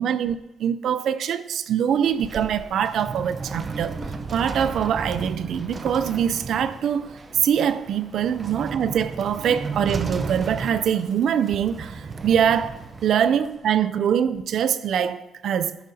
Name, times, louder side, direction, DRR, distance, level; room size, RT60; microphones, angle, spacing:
voice 1, 0.0-3.9 4.3-7.1 7.4-15.8, right 8 dB, 70° right, 0.4 m, -23 dB
sound 1, 1.9-13.8, right 4 dB, 35° right, 0.8 m, -34 dB
11.0 x 9.1 x 2.8 m
cardioid pair, 90°, 0 cm